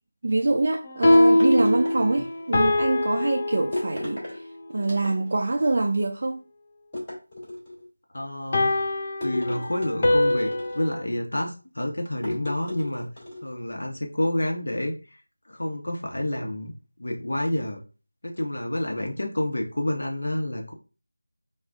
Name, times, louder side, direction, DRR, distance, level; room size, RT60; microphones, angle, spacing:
voice 1, 0.2-6.4, right 2 dB, 40° right, 0.3 m, -25 dB
sound 1, 0.8-4.3 8.5-11.0, left 1 dB, 30° left, 0.5 m, -23 dB
sound 2, 1.1-2.5 3.7-4.4 4.8-5.5 6.9-7.8 9.2-11.0 12.2-13.5, left 1 dB, 15° left, 2.1 m, -35 dB
voice 2, 8.1-8.7 9.2-13.1 13.4-15.2 15.5-16.7 17.0-17.8 18.2-20.7, left 1 dB, 70° left, 0.9 m, -29 dB
6.0 x 2.3 x 2.5 m
figure-of-eight pair, 170°, 0 cm